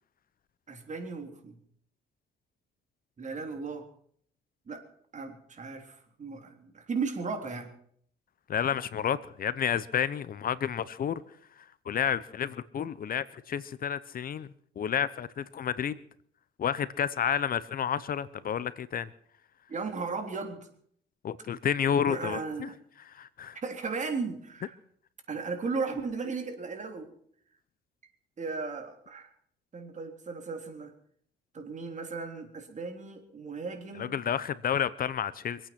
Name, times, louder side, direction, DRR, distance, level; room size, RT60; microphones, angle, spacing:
voice 1, 0.7-1.6 3.2-3.9 4.7-4.8 5.1-7.7 19.7-20.6 22.0-22.8 23.5-24.8 25.3-27.1 28.4-29.3 29.7-30.9 31.5-34.2, right 4 dB, 40° right, 5 dB, 3.5 m, -36 dB
voice 2, 8.5-11.2 11.9-14.5 14.8-16.0 16.6-19.1 21.2-22.7 23.1-23.6 34.0-35.6, left 8 dB, 50° left, 17 dB, 0.8 m, -30 dB
25.5 x 8.9 x 6.0 m, 0.64 s
cardioid pair, 90°, 19 cm